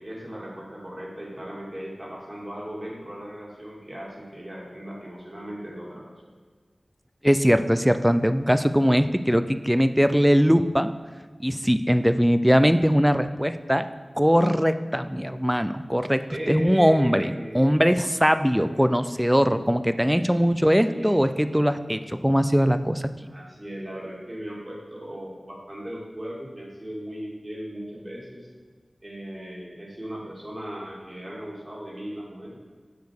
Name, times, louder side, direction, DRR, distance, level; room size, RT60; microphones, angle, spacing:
voice 1, 0.0-6.2 16.3-17.9 20.8-21.1 23.2-28.5 29.0-32.5, equal, 30° right, -3 dB, 2.3 m, -37 dB
voice 2, 7.2-10.9 11.4-13.9 14.2-23.1, equal, 5° right, 11 dB, 0.4 m, -21 dB
6.6 x 5.1 x 6.5 m, 1.5 s
wide cardioid pair, 55°, 0 cm